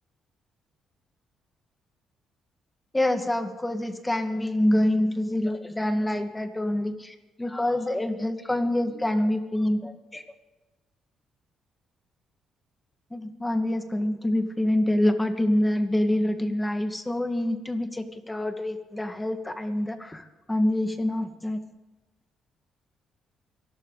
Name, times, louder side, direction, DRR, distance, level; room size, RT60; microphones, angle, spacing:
voice 1, 2.9-6.9 7.4-10.2 13.1-20.2 20.5-21.6, left 1 dB, 10° left, 7 dB, 1.6 m, -26 dB
24.5 x 12.0 x 3.9 m, 1.1 s
cardioid pair, 90°, 0 cm